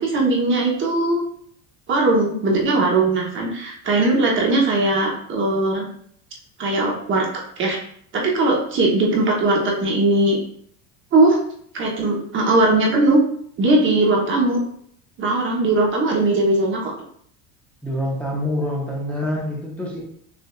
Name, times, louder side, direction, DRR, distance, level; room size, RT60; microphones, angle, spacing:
voice 1, 0.0-1.2 1.9-5.9 6.6-7.8 8.1-10.4 11.1-11.4 11.7-13.2 13.6-14.6 15.2-16.9, right 2 dB, 30° right, -1 dB, 0.8 m, -19 dB
voice 2, 17.8-20.0, left 1 dB, 5° left, -4 dB, 0.7 m, -26 dB
6.6 x 2.5 x 2.3 m, 0.64 s
cardioid pair, 140°, 39 cm